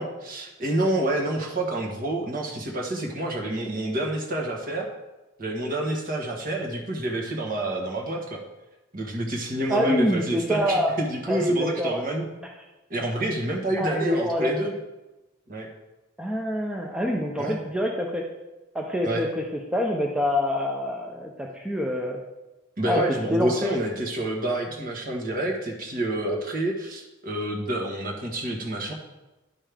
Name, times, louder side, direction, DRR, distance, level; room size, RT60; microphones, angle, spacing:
voice 1, 0.0-4.9 5.4-8.4 8.9-12.3 12.9-14.7 15.5-15.7 17.4-17.6 19.0-19.3 22.8-28.9, right 1 dB, 45° right, 0 dB, 1.4 m, -28 dB
voice 2, 9.7-10.9 11.3-12.0 13.8-14.6 16.2-18.2 18.7-19.4 19.7-22.2 22.8-23.1 23.3-23.7, left 1 dB, 5° right, -1 dB, 0.6 m, -26 dB
11.0 x 5.4 x 3.4 m, 1.1 s
head